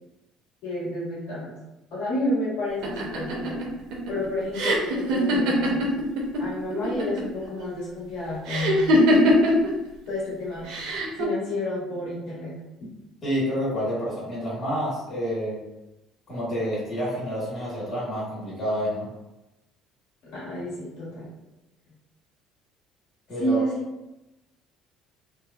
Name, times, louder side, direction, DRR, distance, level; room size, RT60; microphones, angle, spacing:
voice 1, 0.6-1.5 1.9-3.6 4.1-5.8 6.4-8.8 10.1-10.7 11.1-12.5 20.2-21.3 23.4-23.7, left 1 dB, 75° left, -9 dB, 1.2 m, -30 dB
sound 1, 2.8-6.4 6.7-7.4 8.5-9.7 10.7-11.2, equal, 80° right, 0.6 m, -22 dB
voice 2, 13.2-15.6 16.3-19.1 23.3-23.6, equal, 30° left, -8 dB, 1.2 m, -28 dB
3.1 x 2.0 x 2.4 m, 0.97 s
cardioid pair, 135°, 0 cm